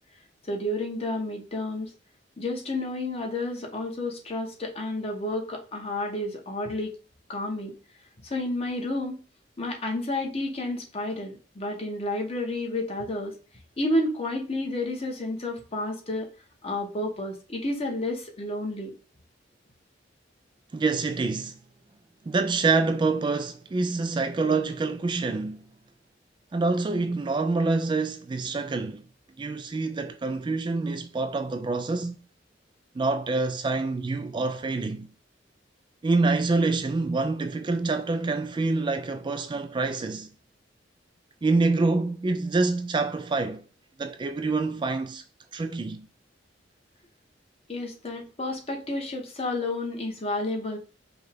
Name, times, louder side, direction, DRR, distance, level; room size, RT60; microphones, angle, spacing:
voice 1, 0.4-1.9 2.4-6.9 7.3-7.7 8.2-9.2 9.6-13.3 13.8-16.3 16.6-18.9 47.7-50.8, left 1 dB, 35° left, 1.1 m, -30 dB
voice 2, 20.7-21.6 22.3-25.6 26.5-29.0 29.4-32.1 33.0-35.1 36.0-40.3 41.4-43.6 44.0-45.2 45.5-46.1, right 3 dB, 25° right, 0.3 m, -26 dB
5.3 x 2.3 x 3.5 m
head